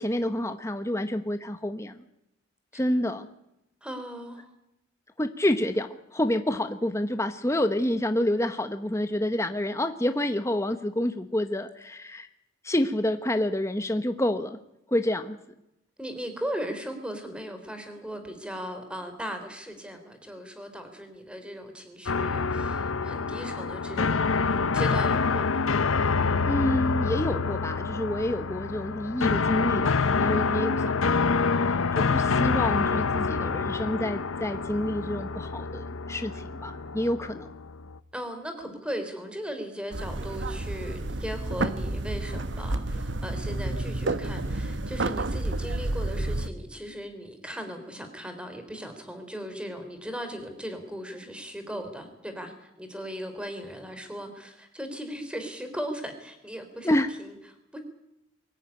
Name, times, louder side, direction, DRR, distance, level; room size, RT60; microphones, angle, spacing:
voice 1, 0.0-2.0 2.7-3.3 5.2-12.3 12.6-14.6 14.9-15.4 26.4-31.2 31.6-37.5 56.8-57.1, left 1 dB, 15° left, 8 dB, 1.0 m, -28 dB
voice 2, 3.8-4.5 16.0-25.7 38.1-57.3 57.7-57.8, equal, 5° right, 7 dB, 3.6 m, -38 dB
sound 1, 22.1-38.0, left 4 dB, 80° left, 0.8 m, -27 dB
sound 2, 39.9-46.5, right 2 dB, 60° right, 1.0 m, -30 dB
23.5 x 14.5 x 9.9 m, 0.85 s
head